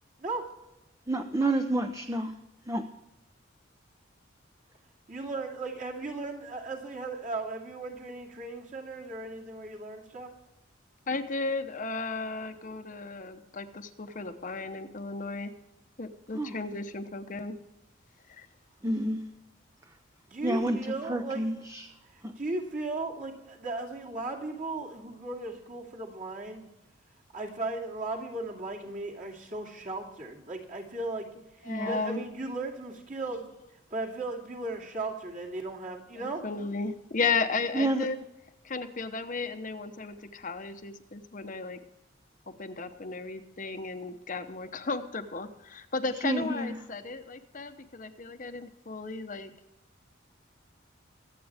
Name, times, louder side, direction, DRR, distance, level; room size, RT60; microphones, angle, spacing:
voice 1, 1.1-2.3 2.7-2.8 16.3-16.6 18.8-19.3 20.4-20.8 21.1-21.9 22.2-22.3 31.7-32.0 37.7-38.1 46.2-46.8, right 1 dB, 15° right, 6 dB, 0.7 m, -29 dB
voice 2, 5.1-10.3 20.3-21.5 22.1-26.7 27.3-31.3 31.9-33.5 33.9-36.4, right 2 dB, 40° right, -1 dB, 2.6 m, -36 dB
voice 3, 11.1-15.5 16.0-17.5 18.3-18.5 31.6-32.2 36.1-38.2 38.6-41.8 42.5-49.5, left 4 dB, 45° left, 7 dB, 0.9 m, -34 dB
23.5 x 8.5 x 3.5 m, 0.91 s
head